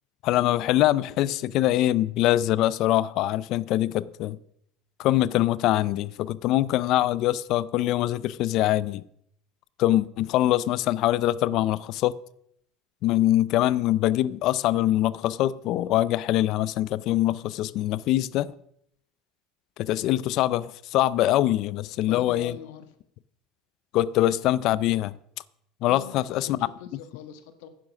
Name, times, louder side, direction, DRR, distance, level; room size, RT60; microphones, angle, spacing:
voice 1, 0.2-4.4 5.0-9.0 9.8-12.2 13.0-18.5 19.8-22.6 23.9-25.1 25.8-26.6, left 14 dB, 45° left, 0.4 m, -23 dB
voice 2, 22.1-22.9 25.8-27.7, left 8 dB, 80° left, 1.6 m, -42 dB
10.5 x 9.9 x 6.2 m
cardioid pair, 170°, 0 cm